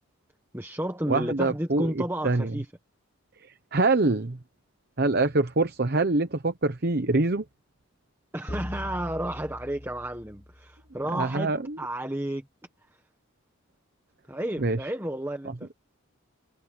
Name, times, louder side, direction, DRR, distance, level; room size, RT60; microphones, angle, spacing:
voice 1, 0.5-2.7 8.3-11.5 11.8-12.4 14.3-15.7, right 1 dB, 10° right, 1.3 m, -32 dB
voice 2, 1.1-2.6 3.7-4.4 5.0-7.4 11.1-11.8 14.6-14.9, right 2 dB, 45° right, 0.9 m, -25 dB
sound 1, 8.5-11.0, left 1 dB, 20° left, 1.4 m, -40 dB
head